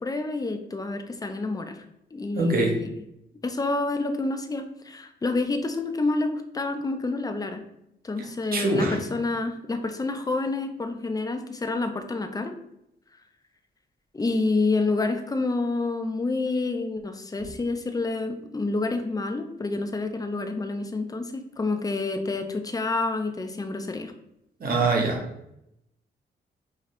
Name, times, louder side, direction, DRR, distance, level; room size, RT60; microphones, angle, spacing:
voice 1, 0.0-1.8 2.1-2.9 3.4-7.6 8.0-12.5 14.1-24.1, left 3 dB, 20° left, 7 dB, 0.5 m, -28 dB
voice 2, 2.4-2.8 8.5-9.0 24.6-25.2, right 3 dB, 50° right, 0 dB, 1.1 m, -23 dB
5.1 x 2.8 x 3.1 m, 0.81 s
cardioid pair, 95°, 19 cm